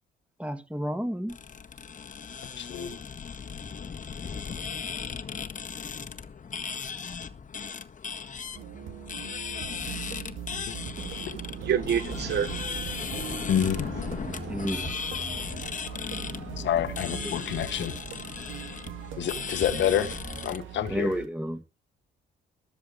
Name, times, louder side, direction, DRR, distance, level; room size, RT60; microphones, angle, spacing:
voice 1, 0.4-1.4 14.5-14.9 17.2-17.3 20.9-21.6, equal, 5° right, 2.5 m, -31 dB
sound 1, 1.3-20.6, left 6 dB, 40° left, 1.7 m, -37 dB
voice 2, 2.6-3.0 10.5-10.7 11.1-11.4 13.5-13.9 15.9-16.0 16.6-17.9 19.2-20.2 20.4-21.2, left 10 dB, 70° left, 1.6 m, -28 dB
sound 2, 8.5-21.3, right 9 dB, 85° right, 2.5 m, -40 dB
voice 3, 11.0-14.7, right 8 dB, 60° right, 0.9 m, -32 dB
14.0 x 9.9 x 5.2 m
cardioid pair, 90°, 20 cm